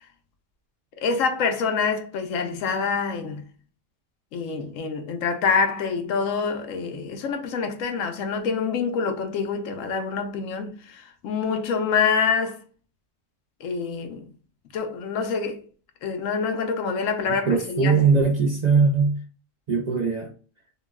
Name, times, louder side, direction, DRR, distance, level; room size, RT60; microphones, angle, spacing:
voice 1, 1.0-3.5 4.3-12.6 13.6-14.3 14.7-15.6 16.0-18.0, left 5 dB, 90° left, 1.0 m, -26 dB
voice 2, 17.3-19.2 19.7-20.3, right 4 dB, 55° right, 0.5 m, -21 dB
3.7 x 2.3 x 2.2 m
omnidirectional pair, 1.3 m